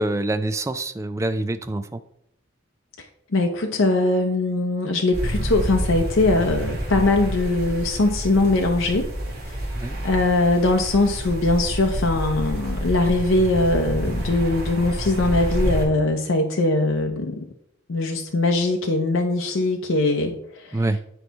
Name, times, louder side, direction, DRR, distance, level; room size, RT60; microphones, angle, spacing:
voice 1, 0.0-2.0 9.7-10.0 20.7-21.0, right 2 dB, 15° right, 10 dB, 0.3 m, -25 dB
voice 2, 3.3-9.1 9.5-9.6 10.0-17.5 17.9-20.8, left 2 dB, 75° left, 3 dB, 0.7 m, -21 dB
sound 1, 5.1-15.9, equal, 50° right, 1.8 m, -28 dB
8.1 x 4.7 x 4.0 m, 0.73 s
head